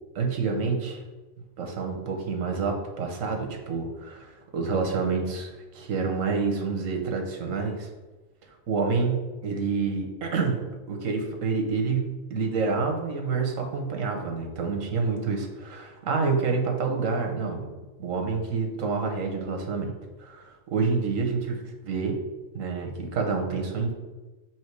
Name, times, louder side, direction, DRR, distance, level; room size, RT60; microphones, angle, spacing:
voice 1, 0.1-1.0 1.6-7.9 8.7-17.7 18.0-22.2 22.5-23.9, right 4 dB, 85° right, 2 dB, 1.4 m, -28 dB
7.3 x 3.0 x 4.6 m, 1.2 s
omnidirectional pair, 1.3 m